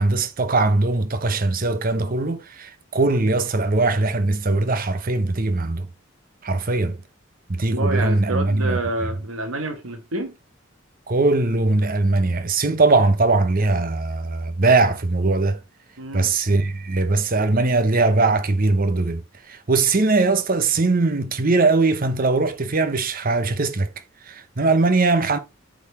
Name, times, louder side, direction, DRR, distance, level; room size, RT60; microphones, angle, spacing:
voice 1, 0.0-5.9 6.4-7.0 7.5-8.8 11.1-15.6 16.1-23.9 24.3-25.4, right 3 dB, 45° right, 0.8 m, -20 dB
voice 2, 7.7-10.3 16.0-16.3, right 2 dB, 85° right, 1.4 m, -28 dB
8.2 x 4.1 x 4.1 m
head